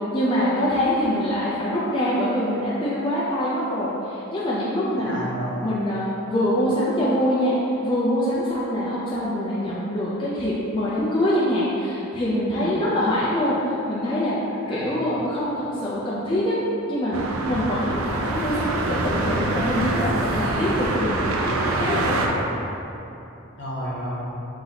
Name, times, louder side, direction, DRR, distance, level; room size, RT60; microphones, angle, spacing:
voice 1, 0.1-5.2 5.6-7.5 7.8-14.4 14.7-16.6 16.9-17.2 17.5-22.4, equal, 25° left, -8 dB, 0.4 m, -24 dB
voice 2, 5.0-5.6 12.5-12.7 14.6-15.0 23.6-24.2, equal, 55° left, -7 dB, 1.0 m, -31 dB
sound 1, 17.1-22.3, right 2 dB, 80° right, 0.4 m, -25 dB
5.7 x 2.7 x 2.8 m, 3.0 s
head